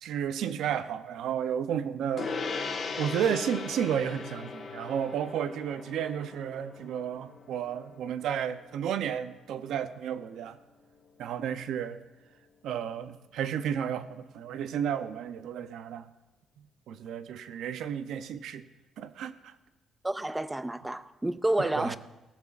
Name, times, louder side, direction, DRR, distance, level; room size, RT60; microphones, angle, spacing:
voice 1, 0.0-2.3 3.0-10.6 11.2-12.0 12.6-16.1 16.9-18.6 19.0-19.5 21.6-22.0, right 9 dB, 75° right, 0.6 m, -32 dB
Gong, 2.2-11.9, left 4 dB, 40° left, 1.4 m, -40 dB
voice 2, 20.0-22.0, right 1 dB, 10° right, 0.4 m, -29 dB
17.5 x 14.0 x 2.5 m
cardioid pair, 155°, 0 cm